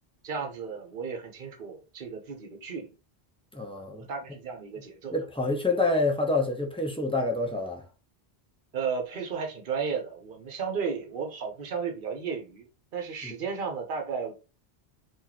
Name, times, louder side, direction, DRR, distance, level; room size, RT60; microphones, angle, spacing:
voice 1, 0.2-2.9 3.9-5.1 8.7-14.3, right 6 dB, 55° right, 1.0 m, -34 dB
voice 2, 3.5-4.1 5.1-7.8 13.2-13.3, left 2 dB, 5° left, 0.6 m, -27 dB
2.9 x 2.6 x 3.9 m
omnidirectional pair, 1.1 m